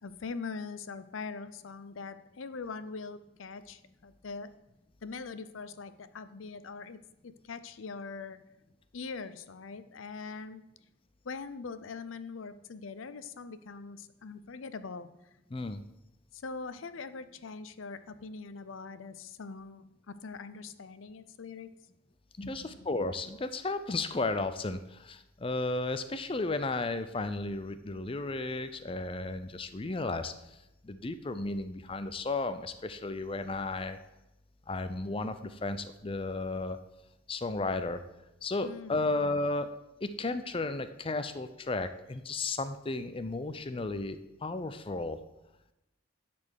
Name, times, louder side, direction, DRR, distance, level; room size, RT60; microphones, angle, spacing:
voice 1, 0.0-4.5 5.0-8.4 8.9-10.6 11.2-15.1 16.3-21.7 22.4-22.6 38.6-39.1, left 4 dB, 85° left, 13 dB, 0.6 m, -42 dB
voice 2, 15.5-15.8 22.5-30.6 30.8-34.0 34.7-36.8 37.3-38.0 38.4-39.8 40.0-45.2, left 2 dB, 25° left, 11 dB, 0.5 m, -34 dB
10.5 x 4.3 x 6.4 m, 0.91 s
head